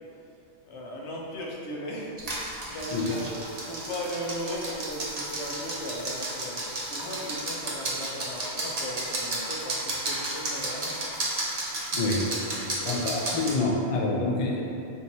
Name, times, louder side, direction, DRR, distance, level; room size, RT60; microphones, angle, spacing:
voice 1, 0.7-11.0 12.4-13.8, equal, 85° left, -3 dB, 1.0 m, -37 dB
sound 1, 2.2-13.6, right 2 dB, 40° right, 0.7 m, -33 dB
voice 2, 11.9-12.3 12.8-14.6, left 2 dB, 50° left, -2 dB, 0.4 m, -27 dB
3.5 x 2.8 x 4.1 m, 2.7 s
omnidirectional pair, 1.1 m